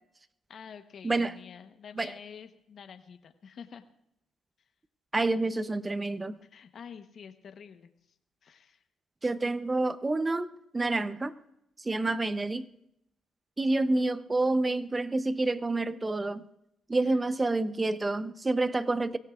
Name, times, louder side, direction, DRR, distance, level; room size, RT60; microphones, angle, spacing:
voice 1, 0.5-3.8 6.5-7.9 8.4-8.8 17.1-17.2, left 7 dB, 55° left, 8 dB, 1.1 m, -48 dB
voice 2, 1.0-1.3 1.9-2.1 5.1-6.4 9.2-10.5 10.7-11.3 11.8-12.7 13.6-16.4 16.9-19.2, right 2 dB, 20° right, 13 dB, 0.8 m, -28 dB
22.5 x 16.5 x 2.5 m, 0.80 s
cardioid pair, 90°, 0 cm